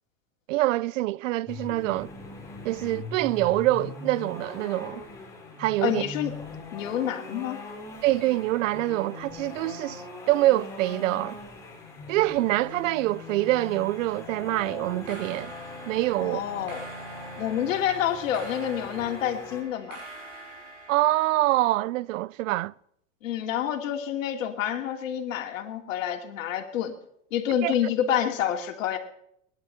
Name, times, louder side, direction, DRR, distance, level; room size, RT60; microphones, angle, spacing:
voice 1, 0.5-2.1 2.6-5.0 5.6-6.0 8.0-11.4 12.1-15.5 15.9-16.4 20.9-22.7 27.6-27.7, right 17 dB, 75° right, 0.6 m, -25 dB
sound 1, 1.5-19.6, left 3 dB, 10° left, 4.6 m, -41 dB
voice 2, 5.8-6.3 6.7-7.6 16.2-16.8 17.4-20.0 23.2-26.9 27.3-29.0, left 10 dB, 80° left, 2.8 m, -28 dB
sound 2, 12.4-13.3 13.6-14.0 14.9-21.7, right 2 dB, 55° right, 6.2 m, -45 dB
21.0 x 11.0 x 5.8 m
supercardioid pair, 140°, 38 cm